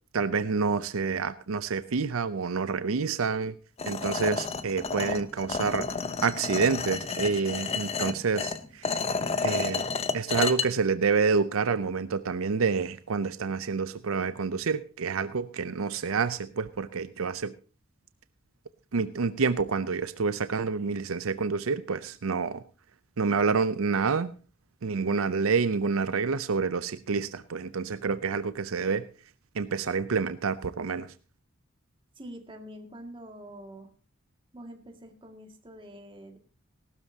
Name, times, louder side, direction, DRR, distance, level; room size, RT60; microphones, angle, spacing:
voice 1, 0.1-3.5 3.9-5.9 6.2-9.0 9.4-9.8 10.1-17.5 18.9-22.6 23.2-24.3 24.8-29.0 29.6-31.1, right 5 dB, 80° right, 13 dB, 0.6 m, -28 dB
sound 1, 3.8-10.7, left 4 dB, 30° left, 0.8 m, -31 dB
voice 2, 32.2-33.9 34.5-36.4, equal, 25° right, 3 dB, 2.1 m, -45 dB
18.5 x 12.5 x 2.8 m, 0.35 s
head